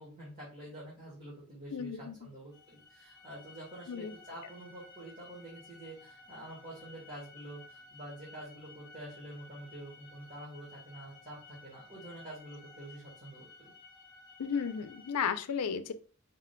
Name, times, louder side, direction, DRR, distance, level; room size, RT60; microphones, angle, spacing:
voice 1, 0.0-13.7, right 1 dB, 35° right, -7 dB, 1.7 m, -47 dB
voice 2, 1.7-2.2 3.9-4.1 14.4-15.9, left 6 dB, 90° left, 10 dB, 0.5 m, -34 dB
sound 1, 2.5-15.2, left 3 dB, 15° left, 1.4 m, -55 dB
4.9 x 3.7 x 2.2 m, 0.39 s
head